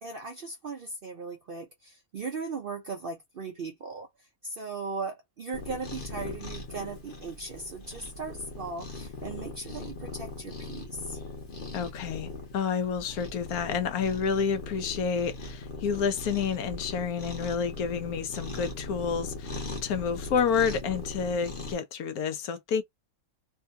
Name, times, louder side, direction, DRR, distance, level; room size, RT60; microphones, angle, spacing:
voice 1, 0.0-11.2, right 4 dB, 60° right, 0.6 m, -38 dB
Cat, 5.5-21.7, left 2 dB, 40° left, 1.1 m, -40 dB
voice 2, 11.7-22.8, left 6 dB, 80° left, 1.2 m, -29 dB
3.4 x 2.3 x 2.6 m
omnidirectional pair, 1.6 m